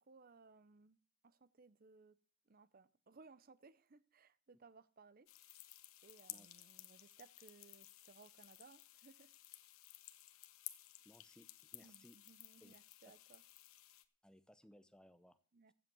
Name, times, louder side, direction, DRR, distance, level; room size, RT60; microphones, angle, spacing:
voice 1, 0.1-1.0 1.2-2.2 2.5-5.3 6.0-9.3 11.8-13.4 15.5-15.7, right 4 dB, 45° right, 16 dB, 0.6 m, -63 dB
sound 1, 5.3-14.0, left 15 dB, 80° left, 1.0 m, -56 dB
voice 2, 11.0-12.2 12.6-12.7 14.2-15.4, equal, 5° left, 12 dB, 0.7 m, -64 dB
15.0 x 8.0 x 6.1 m, 0.40 s
head